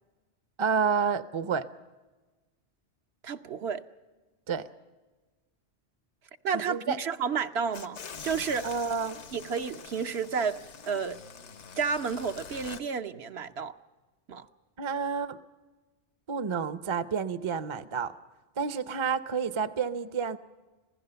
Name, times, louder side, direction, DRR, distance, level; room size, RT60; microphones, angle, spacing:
voice 1, 0.6-1.7 4.5-4.7 6.5-7.0 8.6-9.2 14.8-15.4 16.3-18.1 18.6-20.4, right 6 dB, 30° right, 0.6 m, -29 dB
voice 2, 3.2-3.8 6.4-8.7 9.3-10.6 10.9-11.2 11.8-13.7 14.3-14.5, right 6 dB, 65° right, 1.1 m, -31 dB
sound 1, 7.7-12.8, left 6 dB, 80° left, 1.3 m, -45 dB
26.0 x 16.5 x 6.8 m
omnidirectional pair, 1.2 m